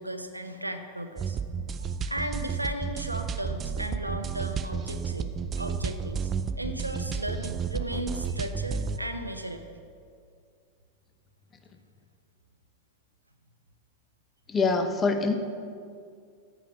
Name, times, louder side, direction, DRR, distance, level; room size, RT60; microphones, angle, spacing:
voice 1, 0.0-1.4 1.8-6.3 6.6-9.7, right 1 dB, 85° right, 6 dB, 0.8 m, -36 dB
sound 1, 1.2-9.0, right 6 dB, 25° right, 0.5 m, -32 dB
voice 2, 14.5-15.3, left 4 dB, 20° left, 8 dB, 1.0 m, -24 dB
14.0 x 5.1 x 7.4 m, 2.3 s
figure-of-eight pair, 90°, 0 cm